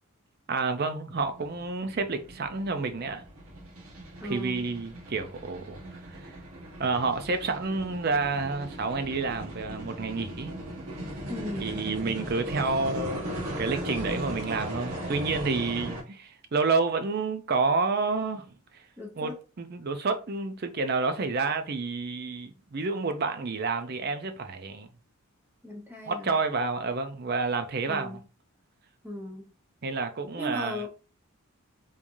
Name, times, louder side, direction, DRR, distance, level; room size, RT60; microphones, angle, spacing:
voice 1, 0.5-3.2 4.2-6.3 6.8-10.5 11.5-13.3 13.6-18.5 19.2-24.9 26.1-28.2 29.8-30.8, right 4 dB, 45° right, 0.5 m, -29 dB
sound 1, 1.2-16.0, right 1 dB, 85° right, 1.4 m, -38 dB
voice 2, 4.2-4.7 11.3-11.7 19.0-19.3 25.6-26.3 27.9-28.3 29.0-29.5 30.4-30.9, left 1 dB, 10° right, 0.8 m, -37 dB
3.6 x 3.2 x 2.6 m
head